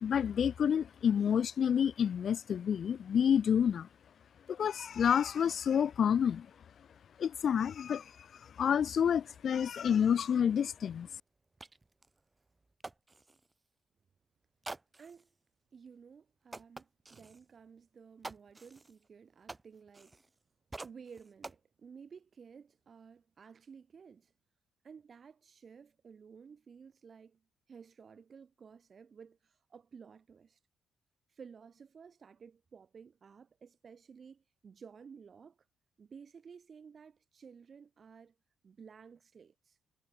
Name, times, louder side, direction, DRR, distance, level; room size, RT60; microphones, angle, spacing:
voice 1, 0.0-3.9 4.5-6.5 7.2-8.0 8.6-11.1, left 8 dB, 55° left, 0.6 m, -29 dB
sound 1, 8.5-8.6 8.8-13.5 14.6-15.3 15.9-16.0 16.5-17.4 18.2-20.4 20.7-21.6, right 2 dB, 20° right, 3.8 m, -50 dB
voice 2, 15.0-15.3 15.7-20.2 20.8-24.3 24.8-27.4 27.7-30.6 31.3-35.6 36.0-38.4 38.6-39.8, right 6 dB, 45° right, 5.4 m, -54 dB
cardioid pair, 90°, 0 cm